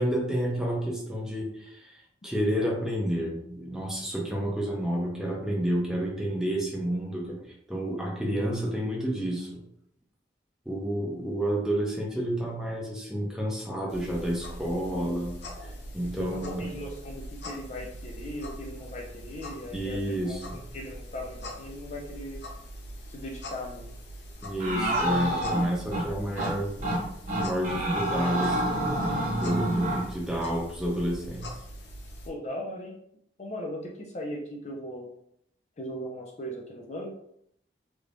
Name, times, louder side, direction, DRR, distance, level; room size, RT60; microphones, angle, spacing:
voice 1, 0.0-2.0 2.2-7.4 7.7-9.6 10.7-15.4 15.9-16.7 19.7-20.6 24.4-26.9 27.4-28.9 29.4-31.5, equal, 5° right, -2 dB, 0.7 m, -30 dB
sound 1, 13.9-32.3, equal, 75° left, 0.7 m, -42 dB
voice 2, 16.0-22.4 23.1-23.9 32.3-33.0 33.4-35.1 35.8-37.2, equal, 40° left, 1 dB, 0.5 m, -38 dB
sound 2, 24.6-26.0 26.4-26.5 26.8-27.0 27.3-30.1, right 1 dB, 45° right, 1.0 m, -27 dB
3.4 x 2.9 x 2.5 m, 0.71 s
head